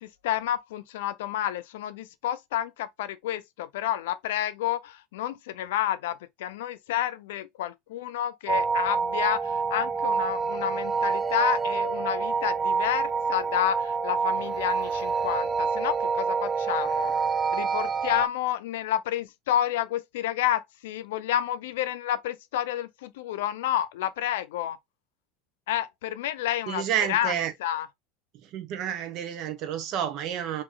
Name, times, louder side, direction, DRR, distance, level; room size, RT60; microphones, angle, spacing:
voice 1, 0.0-17.1 17.5-24.8 25.7-27.3 27.6-27.9, left 12 dB, 80° left, 0.5 m, -30 dB
sound 1, 8.5-18.3, right 5 dB, 15° right, 0.5 m, -27 dB
voice 2, 26.7-27.5 28.5-30.6, right 10 dB, 55° right, 1.1 m, -30 dB
3.1 x 3.0 x 3.7 m
hypercardioid pair, 95°, 0 cm